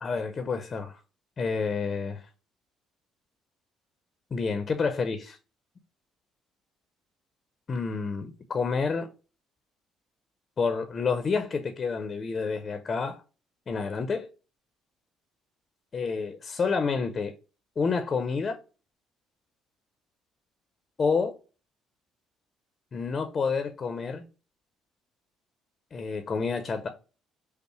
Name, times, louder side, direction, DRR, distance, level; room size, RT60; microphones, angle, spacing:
voice 1, 0.0-1.0 1.4-2.2 4.3-5.4 7.7-9.1 10.6-13.2 13.7-14.3 15.9-17.3 17.8-18.6 21.0-21.4 22.9-24.2 25.9-26.9, left 5 dB, 40° left, 0.6 m, -29 dB
5.3 x 2.0 x 3.1 m
supercardioid pair, 75°, 0 cm